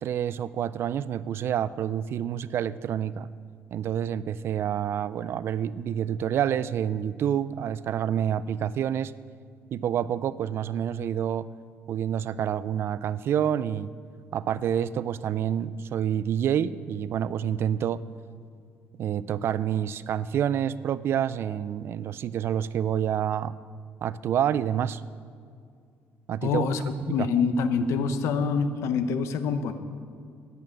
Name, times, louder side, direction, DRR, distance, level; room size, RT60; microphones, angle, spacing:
voice 1, 0.0-3.3 3.7-9.1 9.7-11.5 11.9-13.9 14.3-18.0 19.0-23.5 24.0-25.0 26.3-26.7 27.0-27.3, right 9 dB, 55° right, 17 dB, 0.3 m, -28 dB
voice 2, 26.4-29.7, left 5 dB, 85° left, 10 dB, 0.8 m, -26 dB
11.0 x 8.8 x 6.6 m, 2.3 s
cardioid pair, 120°, 5 cm